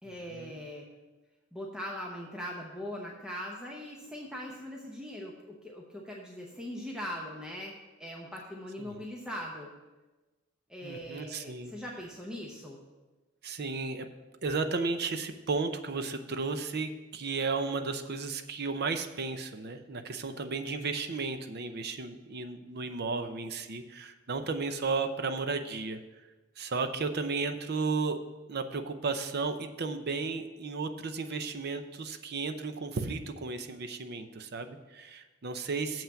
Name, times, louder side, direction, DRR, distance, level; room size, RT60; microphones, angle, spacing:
voice 1, 0.0-0.9 1.5-7.7 8.0-9.7 10.7-12.8, equal, 5° right, -2 dB, 0.9 m, -41 dB
voice 2, 10.8-11.7 13.4-14.1 14.4-26.0 26.6-28.2 28.5-36.0, right 4 dB, 50° right, 9 dB, 0.7 m, -34 dB
7.3 x 5.7 x 7.5 m, 1.2 s
head